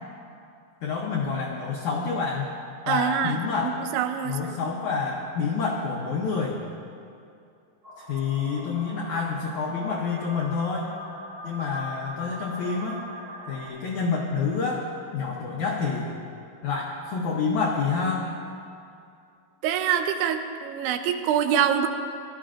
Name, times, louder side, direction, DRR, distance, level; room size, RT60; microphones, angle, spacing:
voice 1, 0.8-2.5 2.9-3.8 4.2-6.6 8.0-10.9 11.4-13.0 13.5-14.9 15.1-16.1 16.6-18.3, left 5 dB, 85° left, -2 dB, 1.7 m, -28 dB
voice 2, 2.9-4.6 19.6-21.9, right 8 dB, 85° right, 7 dB, 2.6 m, -25 dB
sound 1, 7.8-13.7, equal, 30° right, 2.4 m, -41 dB
17.5 x 12.5 x 2.5 m, 2.5 s
omnidirectional pair, 4.6 m